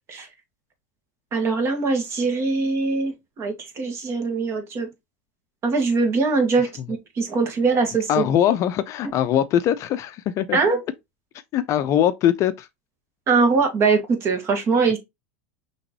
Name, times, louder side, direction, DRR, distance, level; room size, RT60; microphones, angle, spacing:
voice 1, 1.3-4.9 5.6-8.3 10.5-10.8 13.3-15.0, right 4 dB, 35° right, 1.6 m, -22 dB
voice 2, 8.1-10.6 11.5-12.7, left 10 dB, 40° left, 0.5 m, -21 dB
5.8 x 3.0 x 3.0 m
hypercardioid pair, 110°, 8 cm